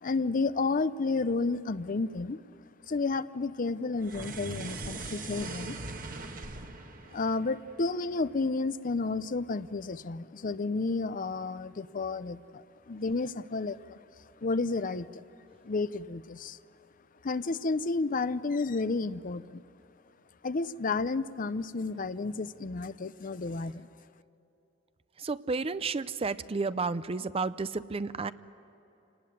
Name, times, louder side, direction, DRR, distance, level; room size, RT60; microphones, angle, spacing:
voice 1, 0.0-2.4 2.9-5.8 7.1-14.0 14.4-15.2 15.6-16.6 17.2-19.6 20.4-23.9, left 3 dB, 45° left, 15 dB, 0.6 m, -31 dB
sound 1, 4.0-8.4, right 3 dB, 45° right, 1.4 m, -41 dB
voice 2, 25.2-28.3, right 4 dB, 30° right, 15 dB, 0.5 m, -31 dB
28.0 x 19.0 x 9.3 m, 3.0 s
head